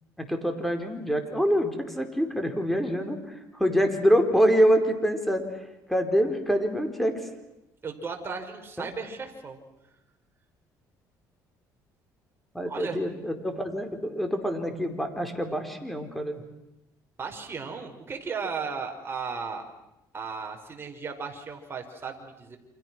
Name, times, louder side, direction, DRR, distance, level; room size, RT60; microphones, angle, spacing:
voice 1, 0.2-5.4 5.9-7.2 8.8-8.9 12.5-16.4, equal, ahead, 5 dB, 4.6 m, -25 dB
voice 2, 7.8-9.6 12.6-13.0 17.2-19.6 20.1-22.6, right 5 dB, 30° right, 3 dB, 5.2 m, -35 dB
29.5 x 26.5 x 6.3 m, 0.88 s
cardioid pair, 90°, 8 cm